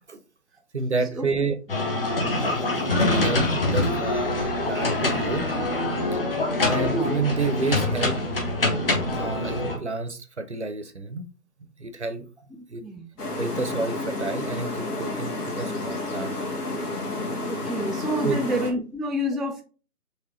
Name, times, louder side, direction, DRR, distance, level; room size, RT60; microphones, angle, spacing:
voice 1, 0.7-1.6 2.3-2.6 3.0-5.5 6.1-6.2 6.6-8.2 9.1-11.3 11.8-12.3 12.7-12.8 13.4-16.4 18.2-18.4, right 3 dB, 45° right, 0.6 m, -29 dB
sound 1, 1.7-9.8, left 2 dB, 35° left, 1.0 m, -25 dB
sound 2, 13.2-18.7, left 2 dB, 70° left, 2.0 m, -30 dB
voice 2, 17.4-19.6, equal, ahead, 0.3 m, -28 dB
4.8 x 3.1 x 3.0 m
figure-of-eight pair, 165°, 47 cm